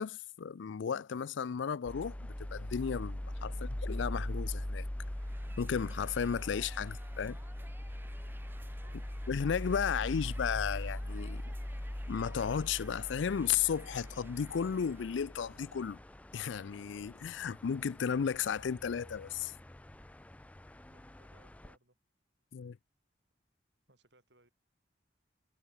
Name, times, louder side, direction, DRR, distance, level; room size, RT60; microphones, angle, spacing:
voice 1, 0.0-4.9 5.6-7.4 9.3-11.4 12.1-16.0 16.3-19.5 22.5-22.8, left 7 dB, 75° left, 0.4 m, -34 dB
sound 1, 1.8-21.7, left 1 dB, 5° left, 0.3 m, -41 dB
sound 2, 4.9-15.3, right 2 dB, 10° right, 0.9 m, -57 dB
voice 2, 8.7-9.0 20.9-22.0 23.9-24.5, right 1 dB, 65° right, 7.6 m, -67 dB
head